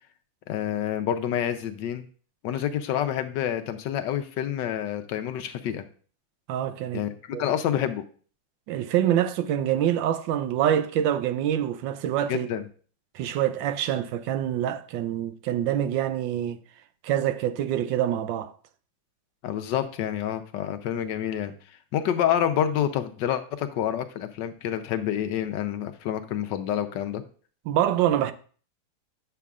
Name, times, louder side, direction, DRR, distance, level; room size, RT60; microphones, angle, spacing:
voice 1, 0.5-2.1 2.4-5.8 6.9-8.0 12.3-12.6 19.4-21.5 21.9-27.2, left 10 dB, 75° left, 1.3 m, -28 dB
voice 2, 6.5-7.0 7.3-7.5 8.7-12.5 13.1-16.6 17.0-18.5 27.7-28.3, right 11 dB, 85° right, 1.3 m, -25 dB
9.3 x 6.9 x 2.4 m
omnidirectional pair, 2.0 m